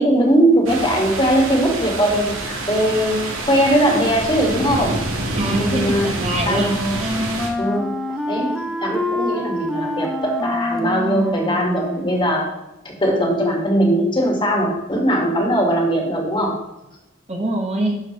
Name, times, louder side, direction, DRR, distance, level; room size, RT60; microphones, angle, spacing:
voice 1, 0.0-5.0 5.5-6.1 6.5-6.9 7.6-8.0 8.3-12.5 12.9-16.6, right 1 dB, 25° left, 1 dB, 2.0 m, -20 dB
sound 1, 0.7-7.5, right 2 dB, 85° right, 1.8 m, -27 dB
voice 2, 5.4-7.3 17.3-18.0, right 1 dB, 35° right, 1 dB, 1.3 m, -24 dB
Wind instrument woodwind instrument, 6.2-12.2, left 1 dB, ahead, 0.8 m, -26 dB
12.0 x 6.5 x 3.3 m, 0.93 s
head